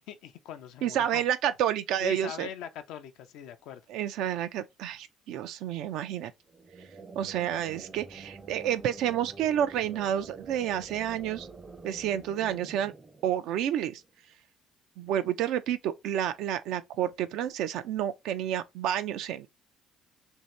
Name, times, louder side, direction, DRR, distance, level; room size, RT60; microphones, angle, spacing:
voice 1, 0.1-1.2 2.0-3.8, left 9 dB, 75° left, 0.5 m, -41 dB
voice 2, 0.8-2.5 3.9-6.3 7.2-11.5 11.8-12.9 13.2-14.0 15.0-19.5, right 10 dB, 75° right, 0.4 m, -30 dB
sound 1, 6.5-14.1, right 3 dB, 25° right, 0.5 m, -47 dB
2.8 x 2.7 x 3.1 m
supercardioid pair, 65°, 0 cm